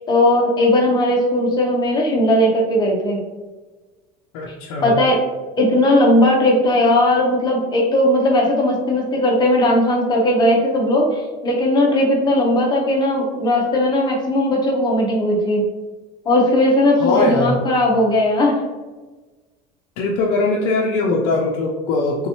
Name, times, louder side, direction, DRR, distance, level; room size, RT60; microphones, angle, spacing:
voice 1, 0.0-3.2 4.5-4.6 4.8-5.2 5.6-15.6 16.2-18.6, left 1 dB, 25° left, 0 dB, 0.8 m, -17 dB
voice 2, 4.3-4.9 17.0-17.6 20.0-22.3, left 3 dB, 70° left, -2 dB, 0.5 m, -21 dB
3.4 x 3.0 x 2.8 m, 1.2 s
cardioid pair, 135°, 17 cm